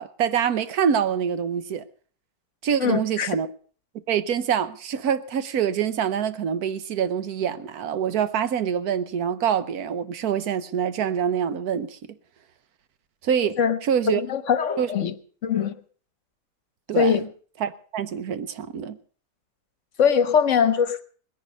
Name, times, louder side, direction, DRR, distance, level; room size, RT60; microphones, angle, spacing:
voice 1, 0.0-1.8 2.6-3.5 4.1-12.0 13.2-13.6 13.8-14.2 14.8-14.9 16.9-17.1 17.6-19.0, right 8 dB, 85° right, 1.4 m, -25 dB
voice 2, 2.8-3.3 13.6-13.8 14.1-15.1 15.4-15.7 16.9-17.3 20.0-21.0, left 7 dB, 60° left, 1.1 m, -21 dB
19.5 x 10.5 x 5.3 m
omnidirectional pair, 1.5 m